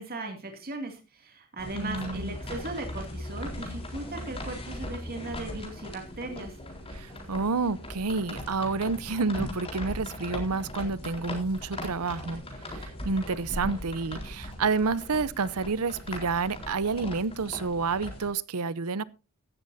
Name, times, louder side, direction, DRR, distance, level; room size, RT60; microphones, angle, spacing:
voice 1, 0.0-6.6, right 2 dB, 45° right, 2.5 m, -38 dB
sound 1, 1.6-18.3, left 1 dB, 25° left, 4.0 m, -39 dB
voice 2, 1.7-2.3 6.9-12.4 12.7-19.0, right 4 dB, 85° right, 0.7 m, -29 dB
16.0 x 13.0 x 2.7 m
head